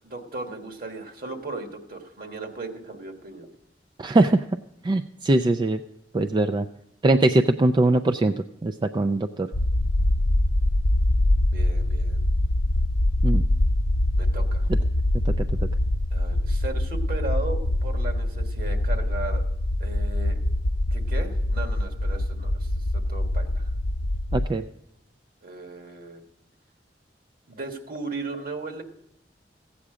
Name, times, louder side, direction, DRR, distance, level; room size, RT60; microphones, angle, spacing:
voice 1, 0.0-3.5 11.5-12.2 14.2-14.7 16.1-19.4 19.8-20.4 20.9-23.7 25.4-26.2 27.5-28.8, right 3 dB, 55° right, 4 dB, 1.6 m, -36 dB
voice 2, 4.0-4.4 4.8-5.8 6.1-6.6 7.0-8.3 8.6-9.5 13.2-13.4 15.3-15.4 24.3-24.6, right 2 dB, 25° right, 7 dB, 0.3 m, -21 dB
sound 1, 9.5-24.5, left 1 dB, 55° left, 0.5 m, -24 dB
15.5 x 8.5 x 4.9 m, 0.76 s
head